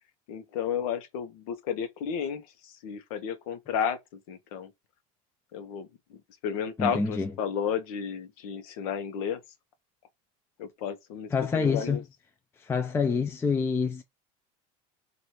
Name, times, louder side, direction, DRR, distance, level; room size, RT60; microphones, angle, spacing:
voice 1, 0.3-4.7 5.5-9.4 10.6-11.3 11.5-12.0, left 7 dB, 75° left, 0.9 m, -33 dB
voice 2, 6.8-7.3 11.3-12.0 12.6-14.0, left 5 dB, 15° left, 0.5 m, -27 dB
3.1 x 2.6 x 4.3 m
supercardioid pair, 125°, 18 cm